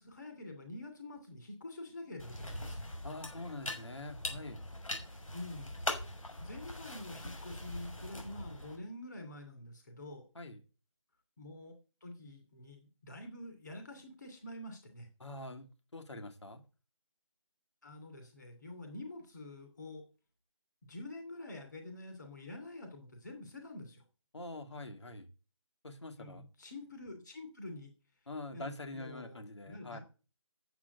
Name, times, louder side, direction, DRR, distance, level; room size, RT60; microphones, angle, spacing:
voice 1, 0.0-2.8 5.3-5.7 6.4-10.2 11.4-11.7 12.0-15.1 17.8-20.0 20.8-24.0 26.2-27.9 28.5-30.0, left 2 dB, 35° left, 2.8 m, -47 dB
sound 1, 2.2-8.8, left 1 dB, 90° left, 6.4 m, -42 dB
voice 2, 3.0-4.6 10.3-10.6 15.2-16.6 24.3-25.3 25.8-26.4 28.3-30.0, left 2 dB, 60° left, 2.8 m, -45 dB
10.0 x 7.5 x 8.3 m
figure-of-eight pair, 180°, 17 cm